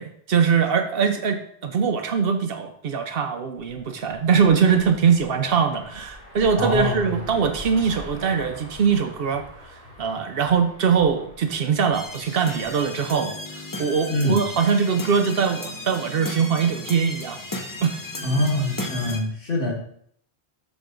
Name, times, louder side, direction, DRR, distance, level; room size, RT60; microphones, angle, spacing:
voice 1, 0.0-9.5 10.0-13.3 13.8-17.4 17.8-17.9, right 6 dB, 65° right, 7 dB, 0.8 m, -22 dB
sound 1, 3.5-12.8, left 1 dB, 90° left, 2.5 m, -43 dB
voice 2, 6.6-7.1 14.1-14.4 18.2-19.7, left 1 dB, 55° left, -2 dB, 1.8 m, -24 dB
sound 2, 11.9-19.2, left 2 dB, 25° left, 0.5 m, -35 dB
6.1 x 3.4 x 5.1 m, 0.66 s
omnidirectional pair, 1.1 m